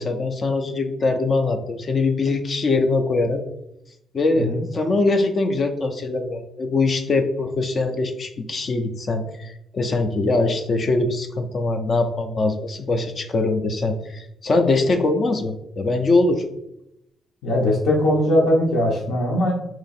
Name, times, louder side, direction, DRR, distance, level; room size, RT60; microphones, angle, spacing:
voice 1, 0.0-3.4 4.1-16.4, left 3 dB, 45° left, 6 dB, 0.4 m, -22 dB
voice 2, 17.4-19.5, left 1 dB, 80° left, -6 dB, 0.8 m, -20 dB
3.0 x 2.5 x 4.0 m, 0.81 s
cardioid pair, 90°, 0 cm